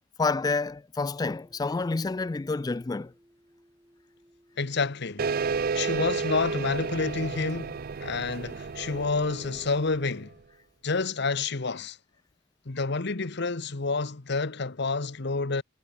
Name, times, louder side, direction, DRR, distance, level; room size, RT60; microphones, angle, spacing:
voice 1, 0.2-3.1, left 3 dB, 20° left, 0.3 m, -28 dB
sound 1, 1.0-10.3, equal, 10° right, 3.4 m, -62 dB
voice 2, 4.6-5.4 5.7-10.3 10.8-12.0 12.7-15.6, left 3 dB, 60° left, 1.1 m, -29 dB
sound 2, 5.2-10.3, right 5 dB, 50° right, 0.5 m, -32 dB
head